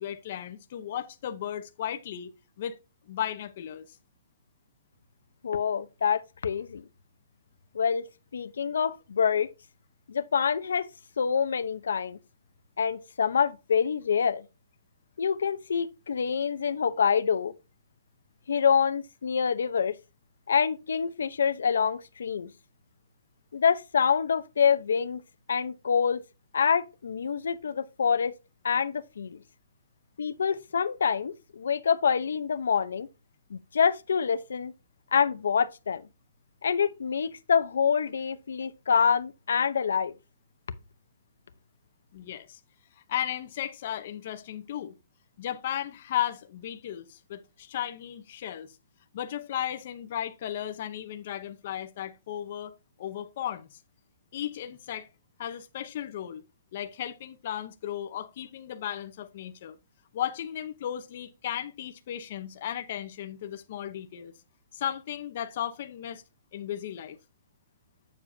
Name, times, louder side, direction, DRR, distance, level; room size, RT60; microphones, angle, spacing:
voice 1, 0.0-2.3 2.6-2.8 3.1-4.0 42.1-42.6 43.1-44.9 45.4-48.7 49.1-52.7 53.0-53.8 54.3-55.1 55.4-56.4 56.7-59.8 60.1-64.3 64.7-66.2 66.5-67.2, left 10 dB, 35° left, 0.8 m, -35 dB
voice 2, 5.4-6.8 7.7-8.0 8.3-9.5 10.1-10.9 11.2-12.2 12.8-14.5 15.2-17.5 18.5-20.0 20.5-22.5 23.5-25.2 25.5-26.2 26.5-28.3 28.6-29.4 30.2-33.1 33.5-34.7 35.1-36.0 36.6-40.1, left 6 dB, 80° left, 0.8 m, -26 dB
8.8 x 7.0 x 2.7 m
hypercardioid pair, 180°, 0 cm